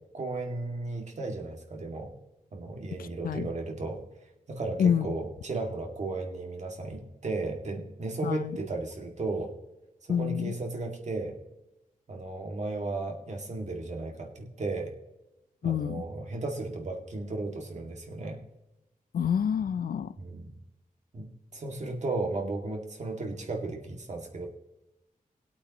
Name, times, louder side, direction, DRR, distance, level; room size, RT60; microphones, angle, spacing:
voice 1, 0.1-2.1 2.5-4.0 4.5-9.5 10.1-11.4 12.1-14.9 15.6-18.4 20.2-20.5 21.1-24.5, right 3 dB, 55° right, 1 dB, 2.1 m, -35 dB
voice 2, 3.0-3.5 4.8-5.1 8.2-8.6 10.1-10.5 15.6-16.0 19.1-20.1, left 8 dB, 85° left, 15 dB, 0.5 m, -28 dB
20.5 x 8.5 x 3.0 m, 0.96 s
wide cardioid pair, 145°, 15 cm